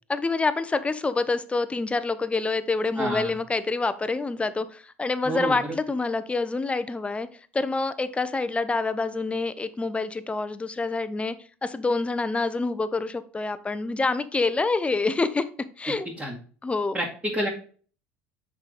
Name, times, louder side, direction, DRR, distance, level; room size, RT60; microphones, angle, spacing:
voice 1, 0.1-7.3 7.5-11.4 11.6-15.5 15.8-16.1 16.6-17.0, left 3 dB, 15° left, 13 dB, 0.7 m, -27 dB
voice 2, 3.0-3.3 5.2-5.8 16.0-16.4 16.9-17.5, right 1 dB, 20° right, -5 dB, 2.2 m, -29 dB
6.3 x 5.1 x 4.0 m, 0.41 s
hypercardioid pair, 80°, 7 cm